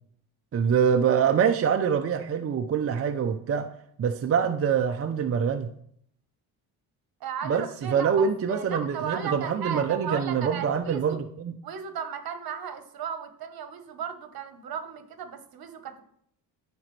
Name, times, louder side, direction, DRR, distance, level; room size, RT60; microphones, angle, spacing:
voice 1, 0.5-3.7 4.0-5.7 7.4-11.5, right 7 dB, 35° right, 0.6 m, -25 dB
voice 2, 7.2-11.2 11.6-16.0, right 7 dB, 65° right, 1.2 m, -35 dB
14.0 x 5.0 x 3.2 m
cardioid pair, 110°, 39 cm